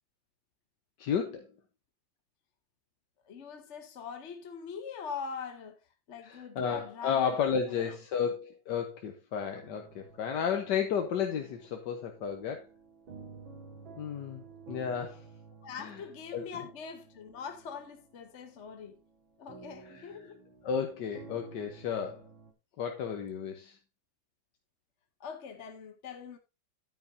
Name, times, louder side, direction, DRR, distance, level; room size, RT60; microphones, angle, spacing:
voice 1, 1.0-1.5 6.2-12.7 14.0-15.2 15.8-16.0 16.3-16.5 19.9-20.1 20.6-22.2 22.8-23.8, left 7 dB, 65° left, 1.5 m, -33 dB
voice 2, 3.2-5.8 6.1-7.3 7.7-8.0 8.2-8.3 15.6-19.0 19.4-20.4 25.2-26.4, left 6 dB, 50° left, 1.0 m, -43 dB
sound 1, 9.6-22.5, right 5 dB, 85° right, 2.8 m, -53 dB
9.9 x 9.3 x 2.7 m
omnidirectional pair, 2.1 m